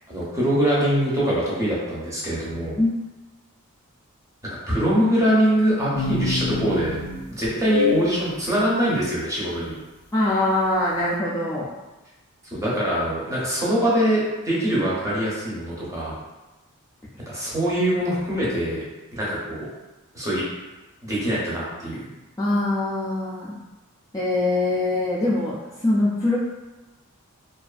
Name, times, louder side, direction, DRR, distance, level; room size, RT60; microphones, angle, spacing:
voice 1, 0.1-2.8 4.7-7.0 7.4-9.8 12.5-16.1 17.3-18.8 19.1-19.7 20.1-20.4 21.0-22.1, equal, 15° right, -7 dB, 0.7 m, -23 dB
sound 1, 5.9-8.2, left 4 dB, 90° left, 0.4 m, -25 dB
voice 2, 10.1-11.7 22.4-23.5 24.1-26.4, left 2 dB, 15° left, -9 dB, 0.3 m, -23 dB
2.4 x 2.3 x 2.4 m, 1.1 s
head